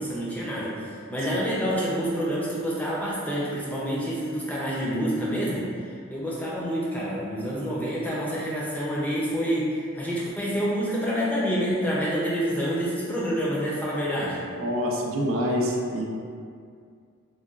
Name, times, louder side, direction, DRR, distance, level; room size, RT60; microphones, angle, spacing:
voice 1, 0.0-5.7 6.1-14.4, equal, 5° left, -7 dB, 0.4 m, -27 dB
voice 2, 14.5-16.1, equal, 70° right, 0 dB, 0.4 m, -26 dB
3.9 x 2.2 x 2.3 m, 2.3 s
head